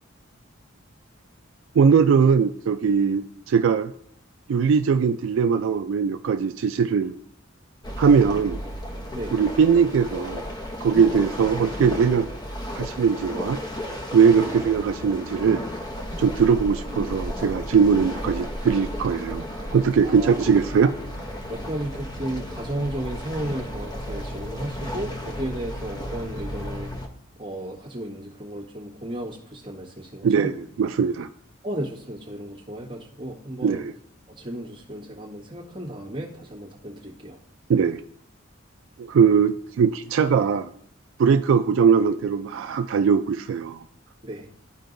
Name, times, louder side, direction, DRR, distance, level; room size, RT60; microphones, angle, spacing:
voice 1, 1.8-3.9 4.5-7.2 8.0-8.6 9.3-10.4 10.8-12.3 12.7-13.6 14.1-15.6 16.2-19.4 19.7-20.9 30.2-30.5 30.8-31.3 33.6-33.9 37.7-38.0 39.0-40.7 41.2-43.8, right 6 dB, 70° right, 9 dB, 0.3 m, -20 dB
sound 1, 7.8-27.1, equal, 20° left, 0.7 m, -34 dB
voice 2, 20.0-20.5 21.5-26.9 27.4-30.5 31.6-33.8 34.3-37.4 44.2-44.5, right 1 dB, 25° right, -5 dB, 1.5 m, -34 dB
13.0 x 4.6 x 2.6 m, 0.65 s
head